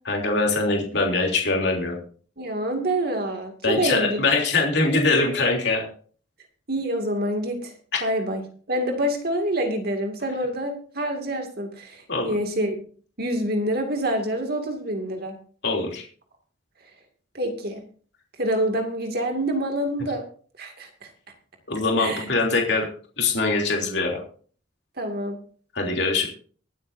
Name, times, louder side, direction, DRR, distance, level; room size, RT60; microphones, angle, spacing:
voice 1, 0.0-2.0 3.6-5.9 7.9-8.0 12.1-12.3 15.6-16.0 21.7-22.9 23.2-24.2 25.7-26.3, left 3 dB, 60° left, 0 dB, 3.2 m, -23 dB
voice 2, 2.4-4.3 6.7-7.7 8.0-8.4 8.7-12.8 13.2-15.4 17.3-17.8 18.4-20.2 20.6-21.1 22.0-22.2 25.0-25.4, right 1 dB, 50° right, 4 dB, 2.3 m, -26 dB
24.0 x 8.6 x 2.7 m, 0.43 s
head